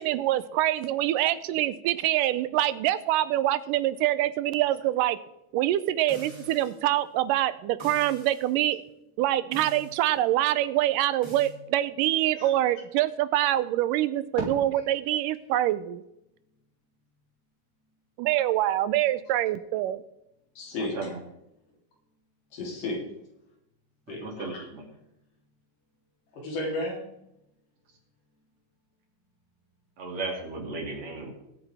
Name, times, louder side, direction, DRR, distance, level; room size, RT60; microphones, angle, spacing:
voice 1, 0.0-5.2 5.5-8.8 9.2-16.0 18.2-20.0, right 14 dB, 90° right, 14 dB, 2.2 m, -25 dB
sound 1, 6.1-6.9 7.8-8.5 9.5-10.1 11.2-11.5, right 1 dB, 10° right, 2.4 m, -46 dB
voice 2, 20.6-21.0 22.5-23.0 24.1-24.7 26.3-27.1, left 2 dB, 80° left, -2 dB, 4.9 m, -33 dB
voice 3, 24.2-24.9 30.0-31.3, right 3 dB, 55° right, 0 dB, 3.7 m, -35 dB
20.5 x 8.8 x 3.5 m, 0.84 s
omnidirectional pair, 3.8 m